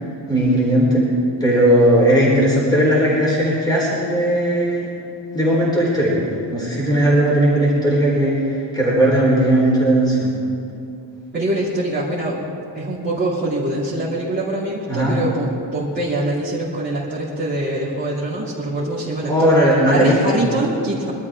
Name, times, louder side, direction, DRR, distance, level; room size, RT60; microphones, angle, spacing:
voice 1, 0.3-1.0 1.4-4.9 5.3-6.2 6.5-10.3 14.9-15.2 19.3-20.4, right 1 dB, 10° left, -6 dB, 4.0 m, -17 dB
voice 2, 11.3-12.4 12.7-19.5 19.8-21.1, right 1 dB, 25° right, -11 dB, 2.9 m, -24 dB
24.0 x 12.5 x 3.7 m, 2.7 s
wide cardioid pair, 165°, 44 cm